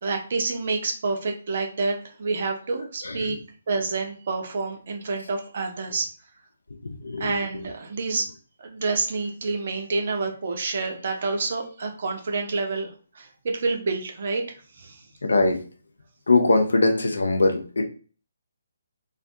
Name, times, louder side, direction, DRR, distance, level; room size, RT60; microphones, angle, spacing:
voice 1, 0.0-3.4 3.7-6.1 7.2-8.3 8.6-14.4 14.8-15.0, right 3 dB, 50° right, 3 dB, 0.6 m, -28 dB
voice 2, 3.0-3.4 7.0-7.3 15.2-15.6 16.3-17.8, left 2 dB, 65° left, 4 dB, 0.5 m, -21 dB
2.5 x 2.1 x 2.6 m, 0.39 s
figure-of-eight pair, 140°, 0 cm